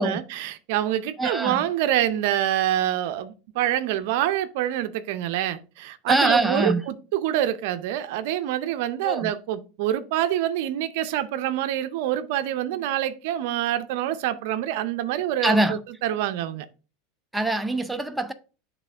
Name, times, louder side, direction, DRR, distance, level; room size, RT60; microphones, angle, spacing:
voice 1, 0.0-16.7, right 12 dB, 70° right, 0.5 m, -26 dB
voice 2, 1.2-1.7 6.1-6.8 9.0-9.3 15.4-15.8 17.3-18.3, right 2 dB, 5° right, 0.5 m, -23 dB
8.1 x 3.6 x 3.4 m
supercardioid pair, 120°, 0 cm